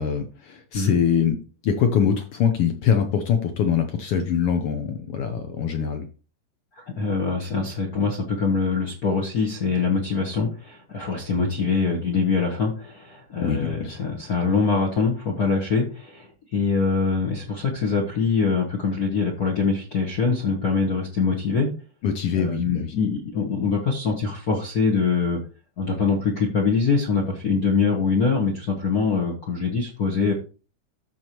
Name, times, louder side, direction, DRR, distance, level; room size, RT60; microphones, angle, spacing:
voice 1, 0.0-1.4 1.6-6.1 13.4-14.0 22.0-22.9, left 7 dB, 80° left, 6 dB, 1.3 m, -23 dB
voice 2, 6.7-21.7 22.4-25.4 25.8-30.3, left 4 dB, 65° left, 0 dB, 0.9 m, -24 dB
13.5 x 4.5 x 3.0 m, 0.35 s
omnidirectional pair, 3.6 m